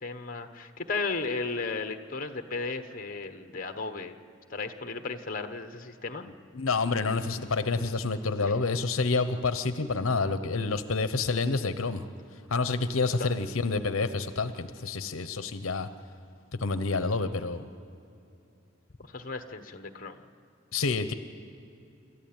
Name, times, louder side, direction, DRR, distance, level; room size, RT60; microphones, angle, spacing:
voice 1, 0.0-4.2 4.5-6.2 8.4-8.5 13.2-13.3 19.1-20.2, left 3 dB, 40° left, 7 dB, 1.2 m, -35 dB
voice 2, 6.5-12.0 12.5-15.9 16.6-17.7 20.7-21.1, left 3 dB, 80° left, 10 dB, 0.8 m, -28 dB
27.0 x 14.0 x 8.9 m, 2.7 s
head